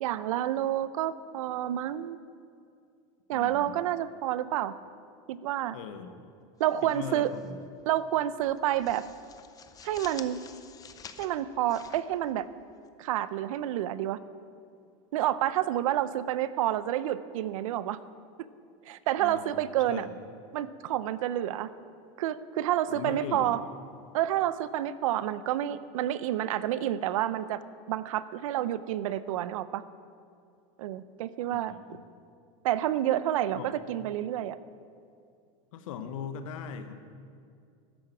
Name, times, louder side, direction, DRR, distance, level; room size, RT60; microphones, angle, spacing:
voice 1, 0.0-2.2 3.3-4.7 5.3-5.8 6.6-7.3 7.9-9.0 9.8-10.4 11.2-12.5 13.0-14.2 15.1-18.0 18.9-20.1 20.5-21.7 22.2-23.6 24.1-27.6 27.9-29.8 30.8-31.7 32.6-34.6, right 12 dB, 85° right, 15 dB, 0.6 m, -29 dB
voice 2, 3.3-3.8 5.7-6.1 6.8-7.6 19.2-19.4 19.9-20.1 22.9-23.5 31.5-31.6 31.9-32.0 33.5-33.8 35.7-36.9, left 7 dB, 80° left, 9 dB, 1.2 m, -39 dB
sound 1, 6.6-7.5 7.8-8.0 8.4-12.9, left 7 dB, 20° left, 0.7 m, -50 dB
13.5 x 10.5 x 6.0 m, 2.4 s
supercardioid pair, 140°, 17 cm